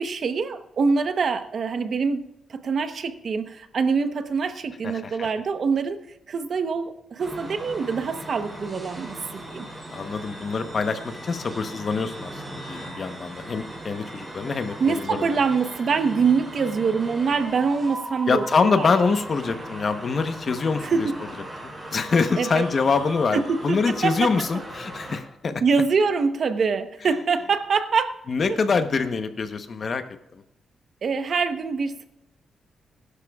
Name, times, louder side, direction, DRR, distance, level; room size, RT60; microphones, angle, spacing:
voice 1, 0.0-2.2 2.5-6.0 6.3-9.7 14.8-18.4 18.7-18.9 20.8-21.1 22.4-22.6 23.3-24.3 25.6-28.2 28.5-28.6 31.0-32.1, right 5 dB, 60° right, 9 dB, 1.0 m, -24 dB
voice 2, 4.8-5.3 9.9-15.3 18.3-21.1 21.6-25.6 28.3-30.0, left 4 dB, 50° left, 8 dB, 1.0 m, -25 dB
sound 1, 7.2-25.2, right 1 dB, 20° right, 4.9 m, -38 dB
21.0 x 11.5 x 2.4 m, 0.83 s
cardioid pair, 90°, 0 cm